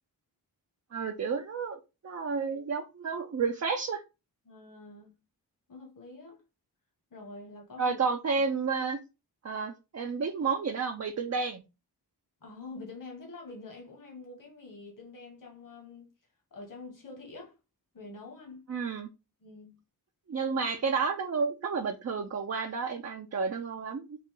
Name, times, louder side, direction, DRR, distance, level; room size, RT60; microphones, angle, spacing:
voice 1, 0.9-4.0 7.8-9.0 9.4-11.6 18.7-19.1 20.3-24.2, right 5 dB, 40° right, 0.5 m, -31 dB
voice 2, 4.4-5.2 5.7-6.4 7.1-8.0 12.4-16.1 16.5-17.6 17.9-18.6 19.4-19.8, left 3 dB, 55° left, 1.6 m, -46 dB
4.1 x 2.5 x 3.7 m
wide cardioid pair, 80°, 39 cm